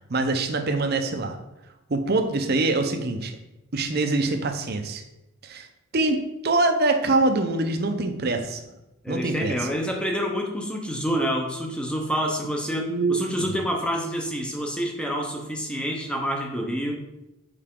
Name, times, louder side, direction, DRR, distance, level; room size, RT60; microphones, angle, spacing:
voice 1, 0.0-1.4 1.9-3.4 3.7-5.0 5.4-5.7 5.9-8.6 9.1-9.6 12.8-13.6, right 2 dB, 45° right, 6 dB, 0.6 m, -24 dB
voice 2, 9.0-17.0, equal, 5° left, 1 dB, 0.7 m, -28 dB
6.7 x 4.8 x 3.7 m, 0.95 s
head